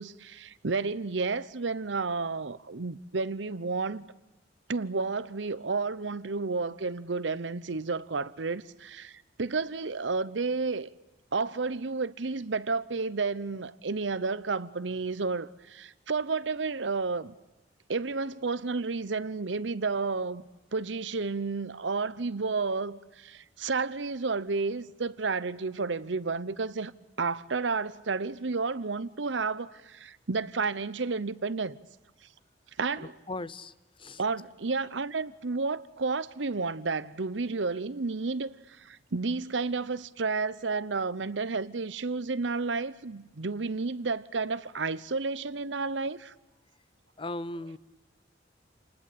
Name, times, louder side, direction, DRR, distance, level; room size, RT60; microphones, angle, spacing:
voice 1, 0.0-4.1 4.7-10.9 11.3-17.3 17.9-20.4 20.7-26.9 27.2-31.8 32.8-33.1 34.2-46.3, right 4 dB, 80° right, 0.9 m, -31 dB
voice 2, 33.0-33.7 34.0-34.2 47.2-47.8, left 2 dB, 30° left, 0.8 m, -37 dB
28.0 x 20.0 x 8.6 m
head